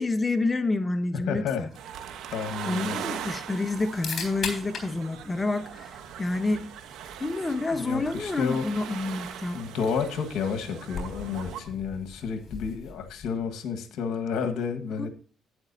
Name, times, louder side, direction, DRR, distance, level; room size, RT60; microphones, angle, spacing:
voice 1, 0.0-1.7 2.7-6.7 7.2-9.6 15.0-15.1, left 3 dB, 20° left, 1.0 m, -28 dB
voice 2, 1.1-1.7 2.3-3.1 7.7-8.7 9.5-15.1, left 6 dB, 80° left, 1.6 m, -31 dB
sound 1, 1.6-13.6, left 4 dB, 50° left, 3.7 m, -42 dB
sound 2, 1.6-6.1, right 9 dB, 70° right, 0.9 m, -45 dB
sound 3, 1.7-11.6, right 8 dB, 85° right, 1.4 m, -41 dB
11.5 x 9.6 x 2.7 m
cardioid pair, 90°, 0 cm